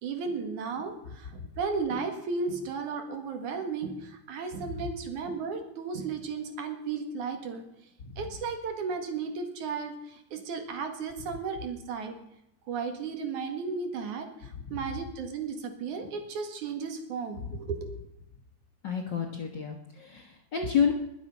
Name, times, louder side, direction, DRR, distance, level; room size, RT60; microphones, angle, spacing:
voice 1, 0.0-7.6 8.2-12.2 12.7-17.9, right 5 dB, 70° right, 5 dB, 3.1 m, -34 dB
voice 2, 18.8-20.9, left 7 dB, 50° left, 2 dB, 1.5 m, -29 dB
21.0 x 7.5 x 5.5 m, 0.84 s
omnidirectional pair, 3.6 m